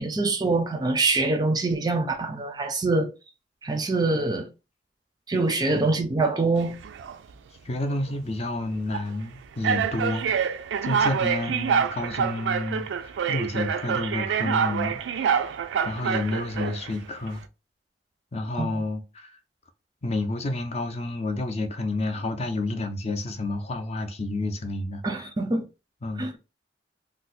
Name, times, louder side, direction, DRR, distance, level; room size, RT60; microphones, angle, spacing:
voice 1, 0.0-3.1 3.6-4.5 5.3-6.8 18.5-18.7 25.0-25.6 26.2-26.3, right 3 dB, 20° right, 0.4 m, -24 dB
sound 1, 6.6-7.2 7.9-8.1 8.9-9.1 9.6-16.9, right 7 dB, 90° right, 0.3 m, -26 dB
voice 2, 7.6-10.4 10.8-15.4 15.8-17.4 18.3-19.4 20.0-25.0 26.0-26.3, left 2 dB, 35° left, 0.5 m, -30 dB
2.6 x 2.0 x 3.9 m
head